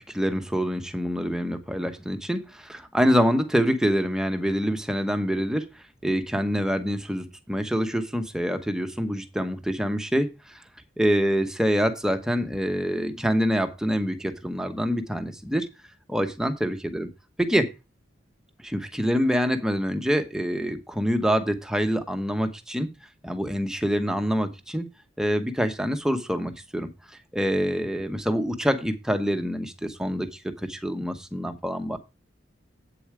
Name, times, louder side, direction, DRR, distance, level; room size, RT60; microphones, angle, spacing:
voice 1, 0.0-5.7 6.0-10.3 11.0-15.7 16.1-17.1 17.4-17.7 18.6-22.9 23.2-24.9 25.2-26.9 27.3-30.3 30.7-32.0, equal, 5° right, 1.0 m, -26 dB
8.6 x 7.0 x 4.7 m
head